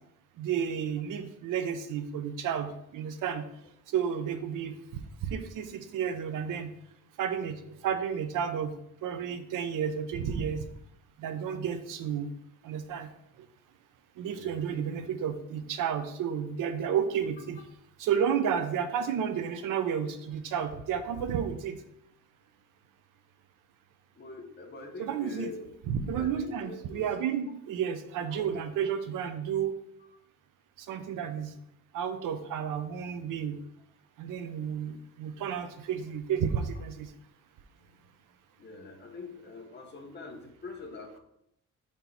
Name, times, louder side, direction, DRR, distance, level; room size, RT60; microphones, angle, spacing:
voice 1, 0.4-3.4 3.9-4.7 5.2-6.7 7.2-7.6 7.8-8.7 9.0-10.6 11.2-12.3 12.6-13.1 14.2-17.6 18.0-21.8 25.0-25.5 25.9-29.7 30.9-31.5 31.9-33.6 34.2-37.1, right 8 dB, 90° right, 9 dB, 0.7 m, -31 dB
voice 2, 14.2-14.9 24.2-25.7 26.1-27.1 28.2-28.6 30.0-30.1 38.6-41.2, left 3 dB, 35° left, 2 dB, 1.0 m, -44 dB
4.5 x 4.5 x 5.4 m, 0.77 s
cardioid pair, 160°, 31 cm